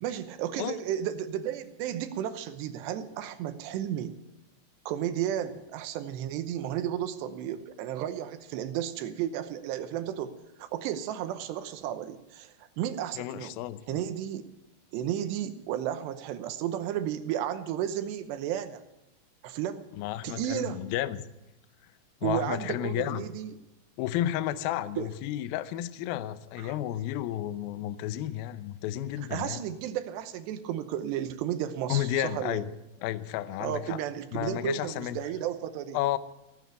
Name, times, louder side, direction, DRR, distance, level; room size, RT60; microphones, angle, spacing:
voice 1, 0.0-4.1 4.9-13.5 13.9-14.5 14.9-18.8 19.4-19.8 20.2-20.8 22.2-23.5 25.0-25.1 26.6-26.8 29.3-32.6 33.6-36.0, right 10 dB, 85° right, 10 dB, 3.0 m, -33 dB
voice 2, 13.2-14.0 20.0-21.2 22.2-23.3 24.0-29.6 31.9-32.7 33.0-34.0 34.3-35.2 35.9-36.2, left 13 dB, 80° left, 13 dB, 2.2 m, -32 dB
16.5 x 9.5 x 8.3 m, 0.96 s
omnidirectional pair, 4.9 m